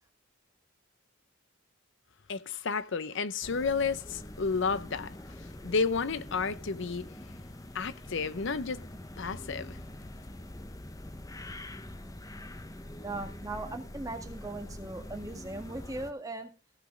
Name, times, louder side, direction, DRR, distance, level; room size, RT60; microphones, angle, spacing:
voice 1, 2.3-5.2 5.6-7.1 7.7-8.9 9.2-9.8, left 5 dB, 60° left, 0.7 m, -31 dB
sound 1, 3.4-16.1, left 1 dB, 15° left, 0.8 m, -44 dB
voice 2, 13.0-16.5, right 2 dB, 15° right, 1.9 m, -39 dB
16.0 x 6.0 x 6.2 m
head